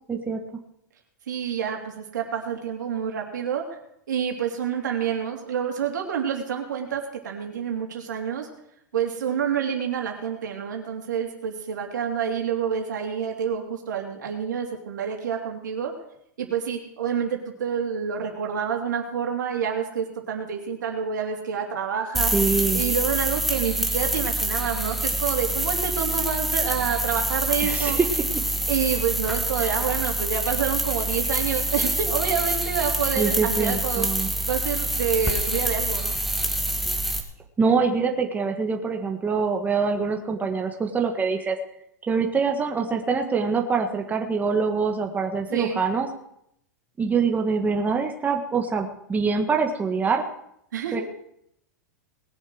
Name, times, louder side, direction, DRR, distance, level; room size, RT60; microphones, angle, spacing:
voice 1, 0.1-0.4 22.3-22.8 27.6-28.1 29.6-29.7 33.2-34.3 37.6-41.6 42.1-46.1 47.0-50.2 50.9-51.0, right 5 dB, 15° right, 2 dB, 1.5 m, -24 dB
voice 2, 1.3-3.6 4.1-8.5 8.9-15.9 16.4-22.3 22.7-28.0 28.7-34.1 34.5-36.1 45.5-45.8 50.7-51.0, right 7 dB, 80° right, 2 dB, 3.1 m, -28 dB
sound 1, 22.1-37.2, right 1 dB, ahead, 1.9 m, -26 dB
20.0 x 7.2 x 6.3 m, 0.75 s
hypercardioid pair, 110°, 10 cm